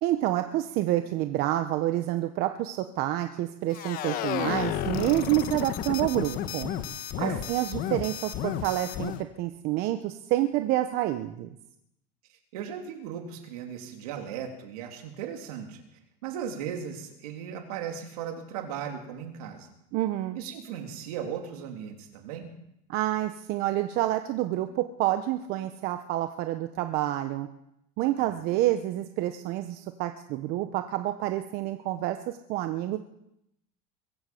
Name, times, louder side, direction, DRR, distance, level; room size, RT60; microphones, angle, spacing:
voice 1, 0.0-6.7 7.2-11.5 19.9-20.4 22.9-27.5 28.0-33.0, right 14 dB, 55° right, 8 dB, 1.0 m, -28 dB
sound 1, 3.7-9.2, left 10 dB, 50° left, 1.3 m, -32 dB
voice 2, 12.5-15.8 16.2-19.7 20.3-22.5 28.2-28.3, right 8 dB, 80° right, 4 dB, 3.2 m, -37 dB
22.5 x 8.2 x 7.8 m, 0.80 s
supercardioid pair, 130°, 19 cm